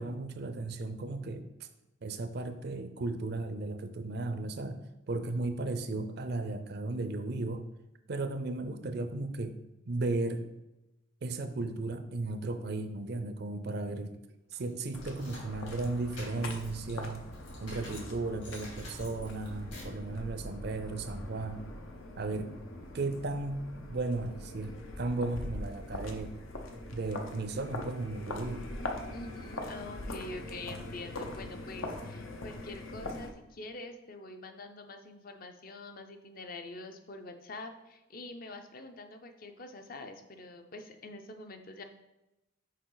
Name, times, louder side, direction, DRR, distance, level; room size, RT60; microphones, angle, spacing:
voice 1, 0.0-1.4 2.0-4.8 5.1-7.6 8.1-9.5 9.9-10.4 11.2-14.2 14.5-17.2 17.6-21.6 22.2-22.5 22.9-24.7 25.0-26.3 26.9-28.6, right 2 dB, 50° right, 9 dB, 0.5 m, -35 dB
sound 1, 14.5-18.1 18.4-20.0, left 1 dB, 65° left, 2.5 m, -49 dB
sound 2, 14.9-33.3, left 1 dB, 80° left, 0.8 m, -42 dB
voice 2, 29.1-41.8, left 2 dB, 45° left, 6 dB, 0.6 m, -45 dB
6.5 x 4.9 x 3.9 m, 0.97 s
head